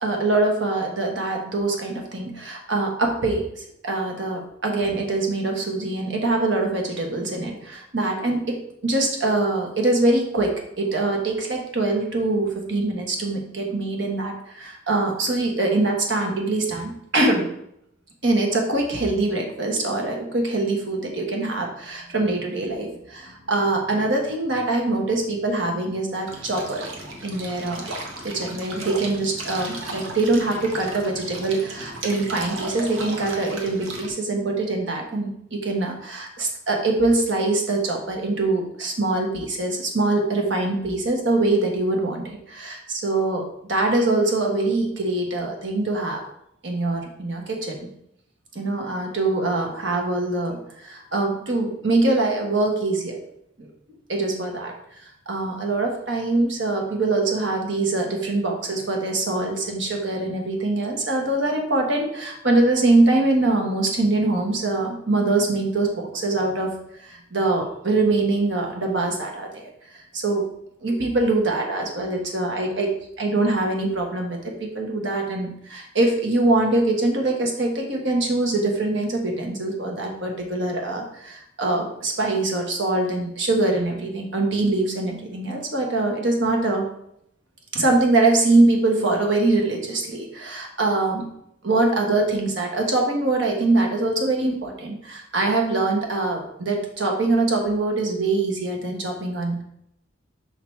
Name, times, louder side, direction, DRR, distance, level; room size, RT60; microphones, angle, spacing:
voice 1, 0.0-8.4 8.8-17.5 18.2-26.8 27.2-27.8 28.2-46.2 46.6-47.9 48.5-53.2 53.6-53.7 54.1-54.7 55.3-66.7 67.0-70.4 70.8-72.9 73.2-86.8 87.7-91.3 91.6-99.6, right 2 dB, 65° right, 1 dB, 1.4 m, -23 dB
sound 1, 26.3-34.1, right 2 dB, 85° right, 1.2 m, -35 dB
6.0 x 3.8 x 4.6 m, 0.75 s
head